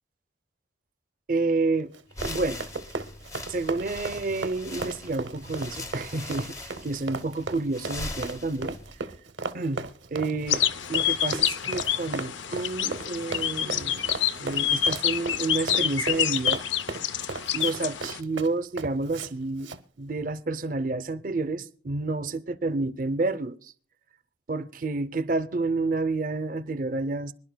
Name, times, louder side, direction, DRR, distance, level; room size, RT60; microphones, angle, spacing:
voice 1, 1.3-1.9 2.3-2.6 3.5-8.8 9.5-10.6 10.9-14.0 14.4-16.6 17.5-19.7 20.0-23.7 24.5-27.3, right 3 dB, 45° right, 0.5 m, -29 dB
Run, 1.9-19.3 19.6-19.8, right 3 dB, 80° right, 0.8 m, -36 dB
sound 1, 2.1-9.0, left 2 dB, 15° left, 0.8 m, -40 dB
sound 2, 10.5-18.2, left 10 dB, 75° left, 0.6 m, -27 dB
25.5 x 11.0 x 2.2 m
head